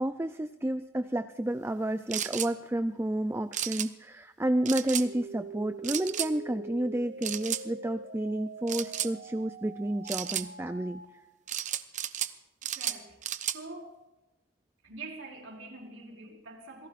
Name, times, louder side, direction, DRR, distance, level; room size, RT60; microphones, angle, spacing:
voice 1, 0.0-11.0, right 1 dB, 10° right, 9 dB, 0.4 m, -31 dB
sound 1, 2.1-2.5 3.5-3.9 4.7-5.1 5.8-6.3 7.2-7.6 8.7-9.1 10.1-10.5 11.5-12.3 12.6-13.6, right 10 dB, 40° right, 0.7 m, -33 dB
sound 2, 5.0-11.0, right 3 dB, 65° right, 4.5 m, -44 dB
voice 2, 12.6-13.2 13.4-14.0 14.8-16.9, right 3 dB, 85° right, -1 dB, 4.9 m, -45 dB
27.0 x 18.5 x 2.5 m, 0.98 s
head